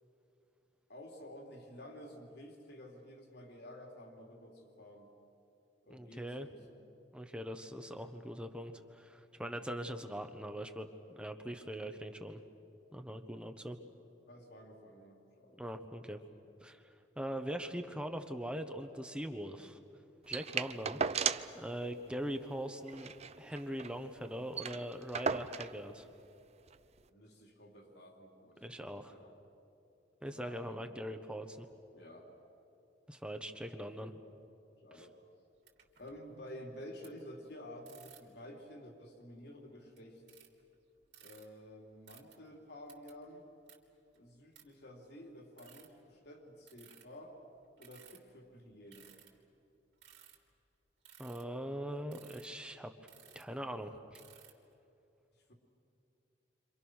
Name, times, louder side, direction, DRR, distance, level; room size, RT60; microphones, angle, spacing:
voice 1, 0.9-5.1 5.8-6.8 14.3-15.6 27.1-29.4 30.3-31.0 31.9-32.3 34.8-35.1 36.0-40.2 41.2-43.5 44.1-47.4 47.8-49.1 55.5-55.6, left 1 dB, 65° left, 1 dB, 3.5 m, -52 dB
voice 2, 5.9-6.5 7.1-12.4 12.9-13.8 15.6-16.2 16.6-19.8 20.3-23.1 23.4-26.1 28.6-29.2 30.2-31.7 33.1-34.1 34.9-35.1 51.2-52.9 53.3-53.9, equal, 5° right, 6 dB, 1.0 m, -42 dB
sound 1, 20.3-21.6 21.9-22.0 22.3-22.5 22.9-24.0 24.3-24.4 24.5-25.8 26.7-26.8, right 6 dB, 35° right, 0.6 m, -36 dB
sound 2, 35.6-36.4 37.0-37.1 37.9-38.4 39.2-39.3 39.8-40.7 41.1-41.5 42.1-42.4 42.9-43.2 43.7-43.8 44.1-44.2 44.6-44.7 45.0-45.1 45.6-46.0 46.7-47.1 47.8-48.3 48.9-49.5 50.0-50.6 51.1-51.4 52.0-52.6 53.0-53.6 54.1-54.7, right 10 dB, 70° right, 3.2 m, -58 dB
29.0 x 26.5 x 6.4 m, 2.7 s
head